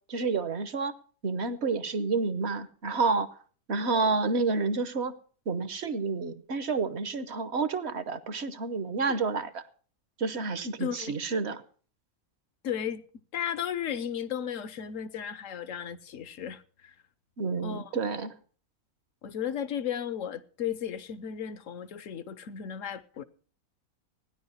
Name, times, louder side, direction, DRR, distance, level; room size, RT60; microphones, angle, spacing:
voice 1, 0.1-0.9 1.2-3.3 3.7-5.1 5.5-9.6 10.2-11.6 17.4-18.3, right 4 dB, 55° right, 1.1 m, -29 dB
voice 2, 10.8-11.2 12.6-13.0 13.3-16.9 17.6-18.0 19.2-23.2, left 9 dB, 65° left, 1.2 m, -35 dB
16.0 x 10.5 x 5.6 m
omnidirectional pair, 1.5 m